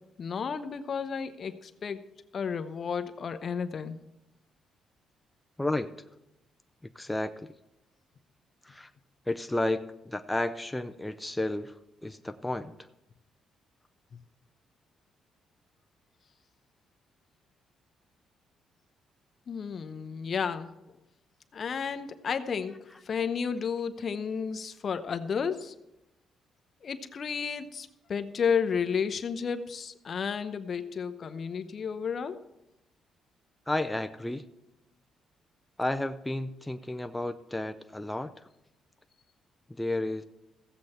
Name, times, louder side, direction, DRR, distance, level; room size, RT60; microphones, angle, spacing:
voice 1, 0.2-2.1 2.3-4.0 19.5-20.7 21.5-25.7 26.8-32.4, left 6 dB, 50° left, 9 dB, 0.8 m, -32 dB
voice 2, 5.6-5.9 6.8-7.5 8.6-8.9 9.3-12.9 33.7-34.4 35.8-38.5 39.7-40.2, left 1 dB, 10° left, 7 dB, 0.5 m, -32 dB
15.5 x 7.9 x 4.3 m, 0.92 s
cardioid pair, 90°, 0 cm